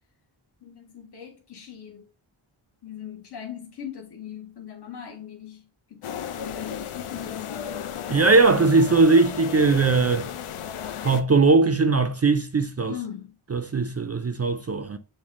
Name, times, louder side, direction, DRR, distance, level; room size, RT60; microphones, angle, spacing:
voice 1, 0.6-2.0 2.8-5.6 5.9-7.4 12.9-13.3, left 9 dB, 50° left, 0.8 m, -39 dB
sound 1, 6.0-11.2, left 9 dB, 80° left, 0.6 m, -34 dB
voice 2, 8.1-10.3 11.0-13.0 13.5-15.0, right 3 dB, 35° right, 0.4 m, -19 dB
6.1 x 2.2 x 3.6 m
wide cardioid pair, 55°, 50 cm